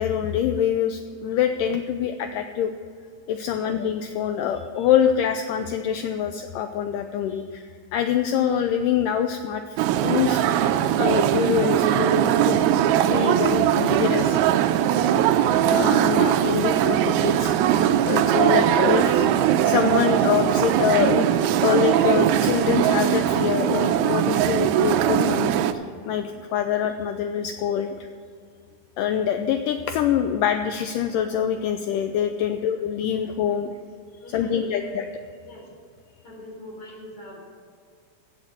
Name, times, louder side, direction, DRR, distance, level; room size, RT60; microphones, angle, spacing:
voice 1, 0.0-2.7 3.3-10.4 11.0-12.6 13.1-14.4 15.7-17.6 18.1-21.3 21.6-28.1 29.0-33.7 34.3-35.1, left 9 dB, 85° left, 7 dB, 1.9 m, -25 dB
sound 1, 9.8-25.7, right 11 dB, 85° right, 2.5 m, -20 dB
voice 2, 14.9-15.2 32.5-32.6 33.5-33.8 34.2-34.9 35.4-35.7 36.2-37.4, left 1 dB, 35° left, -3 dB, 4.6 m, -42 dB
16.0 x 6.5 x 7.5 m, 2.3 s
omnidirectional pair, 4.4 m